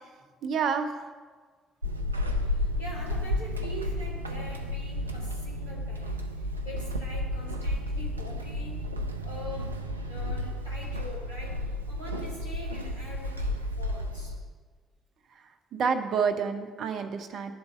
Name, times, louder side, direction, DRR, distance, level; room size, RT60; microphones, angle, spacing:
voice 1, 0.4-1.1 15.7-17.5, right 6 dB, 60° right, 7 dB, 0.7 m, -28 dB
Walk footsteps / Squeak, 1.8-14.5, left 1 dB, 90° right, 0.3 m, -32 dB
voice 2, 2.4-14.4, left 1 dB, 85° left, -4 dB, 1.6 m, -44 dB
10.5 x 4.0 x 6.8 m, 1.5 s
figure-of-eight pair, 45°, 0 cm